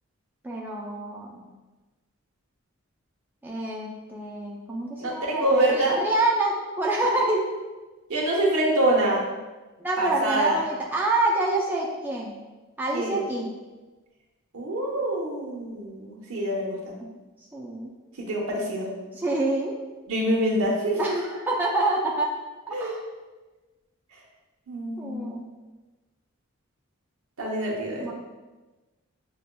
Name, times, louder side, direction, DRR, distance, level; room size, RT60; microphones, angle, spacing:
voice 1, 0.4-1.5 3.4-7.5 9.8-12.4 12.8-13.5 17.0-17.1 17.5-17.9 19.1-19.7 21.0-22.3 22.8-23.0 25.0-25.4 27.9-28.1, right 2 dB, 10° right, -3 dB, 0.4 m, -27 dB
voice 2, 5.0-6.0 8.1-9.2 10.0-10.6 12.9-13.3 14.5-16.9 18.2-18.9 20.1-21.0 22.7-23.0 24.1-24.2 24.7-25.4 27.4-28.1, right 1 dB, 85° right, -2 dB, 0.9 m, -25 dB
6.4 x 2.3 x 2.2 m, 1.2 s
head